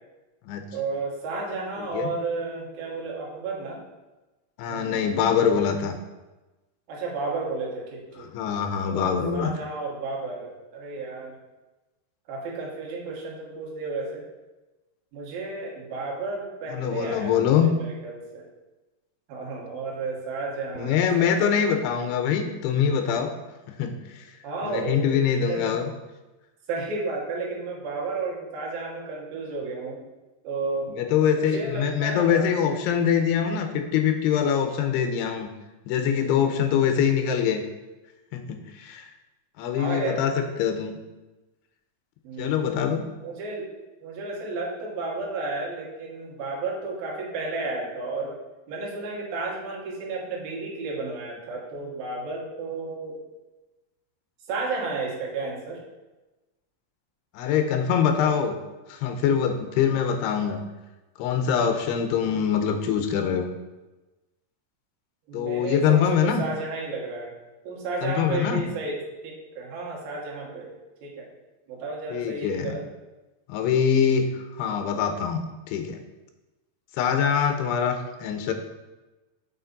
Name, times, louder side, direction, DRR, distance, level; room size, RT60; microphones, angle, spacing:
voice 1, 0.7-3.8 4.7-5.1 6.9-8.3 8.8-11.3 12.3-14.3 15.1-18.4 19.3-21.7 24.4-25.0 25.3-25.8 26.7-30.0 30.4-30.9 31.4-32.5 39.8-40.3 42.2-42.7 43.2-43.7 44.0-48.4 48.7-53.2 54.5-55.8 65.3-67.3 67.6-70.7 71.0-71.3 71.7-72.8, right 3 dB, 70° right, -2 dB, 3.2 m, -32 dB
voice 2, 1.8-2.1 4.6-6.0 8.2-9.5 16.7-17.7 20.8-23.3 23.8-24.3 24.6-25.8 30.9-35.5 35.9-37.6 38.3-38.4 38.8-39.1 39.6-40.3 40.6-41.0 42.4-43.0 57.3-58.6 58.9-60.6 61.2-63.5 65.3-66.4 68.0-68.6 72.1-72.8 73.5-74.3 74.6-76.0 77.0-78.5, left 8 dB, 85° left, 5 dB, 2.7 m, -24 dB
6.8 x 5.8 x 4.0 m, 1.1 s
omnidirectional pair, 4.6 m